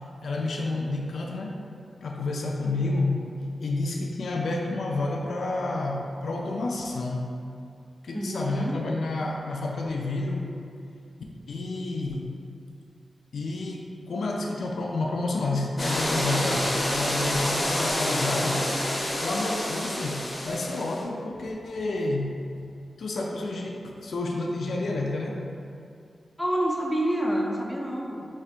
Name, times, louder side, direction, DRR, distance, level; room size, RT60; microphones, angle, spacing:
voice 1, 0.2-1.6 2.0-3.2 3.6-7.3 8.0-10.5 11.5-12.3 13.3-18.7 19.2-22.4 23.0-25.4, left 2 dB, 80° left, 0 dB, 0.3 m, -29 dB
voice 2, 8.1-8.8 26.4-28.3, right 1 dB, 5° left, -2 dB, 0.5 m, -27 dB
sound 1, 15.8-21.0, left 1 dB, 30° left, 0.8 m, -28 dB
4.1 x 3.3 x 2.4 m, 2.5 s
wide cardioid pair, 85°, 0 cm